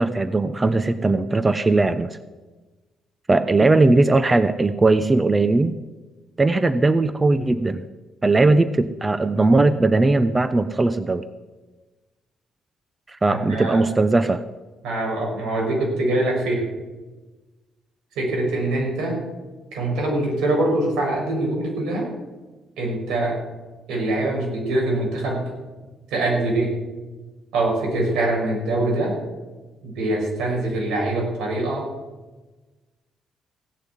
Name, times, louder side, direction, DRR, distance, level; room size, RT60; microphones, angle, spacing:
voice 1, 0.0-2.2 3.3-5.8 6.4-7.8 8.2-11.2 13.1-14.4, right 2 dB, 20° right, 13 dB, 0.7 m, -19 dB
voice 2, 13.3-13.8 14.8-16.6 18.2-19.2 19.7-22.1 22.8-23.4 23.9-25.5 26.1-26.7 27.5-29.2 29.8-31.9, right 2 dB, 85° right, -1 dB, 5.7 m, -23 dB
16.5 x 7.0 x 9.3 m, 1.2 s
cardioid pair, 90°, 0 cm